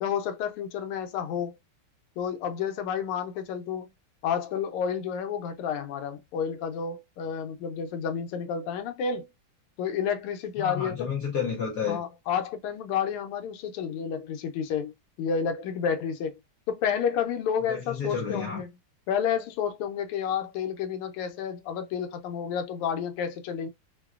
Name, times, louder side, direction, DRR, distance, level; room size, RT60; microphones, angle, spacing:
voice 1, 0.0-1.5 2.2-3.9 4.2-9.3 9.8-11.1 11.9-14.9 15.2-16.3 16.7-18.7 19.1-23.7, left 7 dB, 85° left, 1.5 m, -30 dB
voice 2, 10.6-12.0 17.7-18.6, left 6 dB, 65° left, 1.0 m, -30 dB
3.6 x 2.1 x 2.3 m
omnidirectional pair, 2.4 m